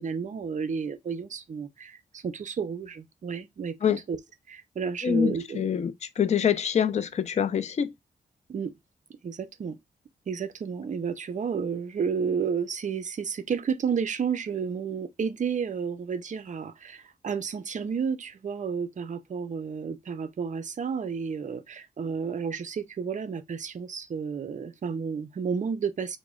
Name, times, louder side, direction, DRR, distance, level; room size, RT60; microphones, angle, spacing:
voice 1, 0.0-3.8 4.1-4.2 4.5-5.7 8.5-8.7 9.2-9.8 10.3-26.2, right 6 dB, 45° right, 0.5 m, -31 dB
voice 2, 5.0-7.9, left 8 dB, 40° left, 0.4 m, -25 dB
3.0 x 2.1 x 3.6 m
wide cardioid pair, 95°, 17 cm